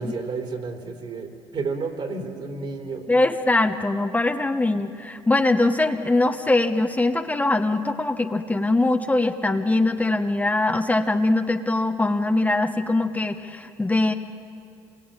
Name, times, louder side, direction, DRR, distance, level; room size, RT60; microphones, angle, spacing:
voice 1, 0.0-3.1, right 4 dB, 55° right, 3 dB, 3.9 m, -31 dB
voice 2, 3.1-14.1, left 2 dB, 15° left, 6 dB, 1.1 m, -22 dB
26.5 x 22.0 x 9.0 m, 2.5 s
cardioid pair, 85°, 10 cm